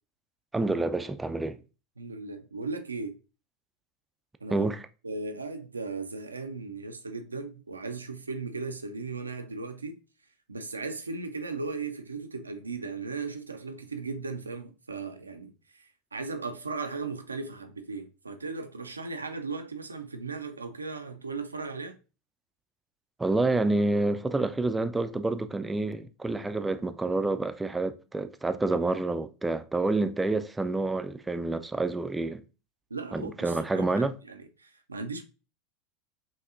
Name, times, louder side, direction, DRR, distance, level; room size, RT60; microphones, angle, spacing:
voice 1, 0.5-1.6 4.5-4.8 23.2-32.4 33.1-34.2, right 2 dB, 10° right, 0.4 m, -28 dB
voice 2, 2.0-3.2 4.4-4.7 5.0-10.0 10.5-22.0 32.9-35.2, right 4 dB, 85° right, 0.4 m, -37 dB
5.6 x 2.7 x 2.5 m
figure-of-eight pair, 80°, 0 cm